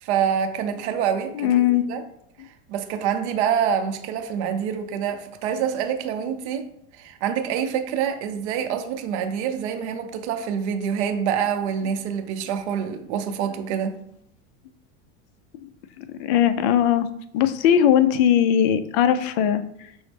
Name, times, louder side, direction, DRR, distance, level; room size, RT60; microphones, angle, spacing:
voice 1, 0.0-2.0 2.4-6.7 6.9-14.0, right 8 dB, 70° right, 0.6 m, -26 dB
voice 2, 1.4-1.9 16.0-17.1 17.3-19.6, left 9 dB, 50° left, 0.4 m, -19 dB
6.1 x 2.1 x 3.3 m
supercardioid pair, 135°, 36 cm